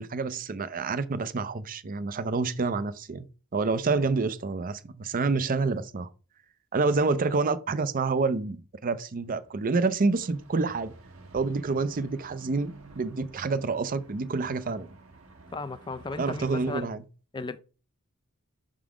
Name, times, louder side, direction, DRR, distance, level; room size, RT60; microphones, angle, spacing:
voice 1, 0.0-3.3 3.5-6.1 6.7-10.9 11.3-14.9 16.2-17.0, right 4 dB, 40° right, 0.5 m, -28 dB
sound 1, 9.1-16.8, right 3 dB, 70° right, 1.3 m, -51 dB
voice 2, 15.5-16.9 17.3-17.6, left 3 dB, 20° left, 0.4 m, -35 dB
6.0 x 3.7 x 4.9 m
head